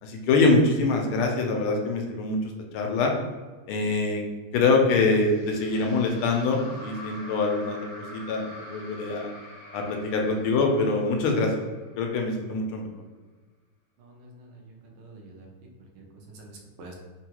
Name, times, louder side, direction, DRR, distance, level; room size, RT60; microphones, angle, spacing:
voice 1, 0.0-3.1 3.7-4.3 4.5-9.3 9.7-11.6 12.0-12.9, left 3 dB, 80° left, 2 dB, 1.4 m, -24 dB
sound 1, 5.2-12.4, equal, 50° left, 1.0 m, -45 dB
voice 2, 14.0-15.5 15.9-16.9, right 2 dB, 75° right, 0 dB, 1.4 m, -47 dB
3.7 x 2.2 x 2.9 m, 1.3 s
omnidirectional pair, 2.4 m